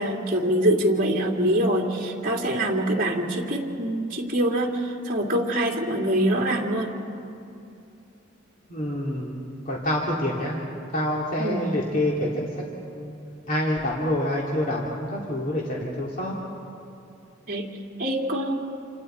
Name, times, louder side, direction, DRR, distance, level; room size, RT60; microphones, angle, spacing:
voice 1, 0.0-6.9 11.4-11.6 17.5-17.7 18.0-18.6, right 1 dB, 45° right, -1 dB, 2.7 m, -24 dB
voice 2, 8.7-10.6 10.9-13.2 13.5-16.3, left 1 dB, 45° left, -3 dB, 2.3 m, -27 dB
28.5 x 27.0 x 4.4 m, 2.7 s
head